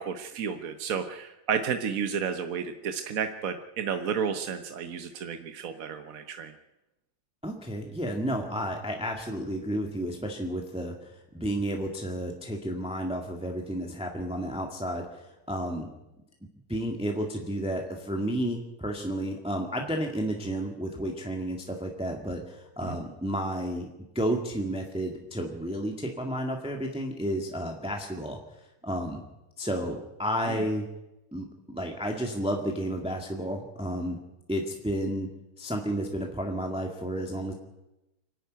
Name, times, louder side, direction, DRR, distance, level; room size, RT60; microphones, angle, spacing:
voice 1, 0.0-6.5 22.8-23.0 30.5-30.6, right 7 dB, 50° right, 7 dB, 1.2 m, -32 dB
voice 2, 7.4-11.1 11.3-15.9 16.7-23.9 24.2-28.4 28.8-29.2 29.6-30.9 31.3-34.2 34.5-35.3 35.6-37.5, equal, 5° right, 1 dB, 1.8 m, -31 dB
25.0 x 11.5 x 9.3 m, 0.96 s
omnidirectional pair, 2.3 m